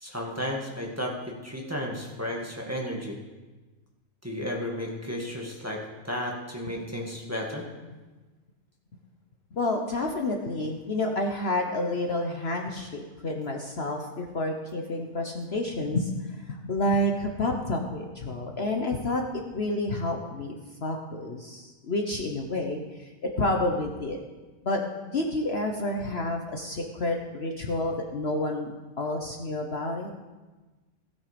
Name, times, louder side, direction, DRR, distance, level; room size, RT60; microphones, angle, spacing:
voice 1, 0.0-3.2 4.2-7.7, equal, 10° right, -2 dB, 1.9 m, -33 dB
voice 2, 9.5-20.6 20.8-24.2 24.6-24.8 25.1-30.1, left 1 dB, 50° left, 2 dB, 1.2 m, -29 dB
16.5 x 8.7 x 5.2 m, 1.2 s
omnidirectional pair, 1.5 m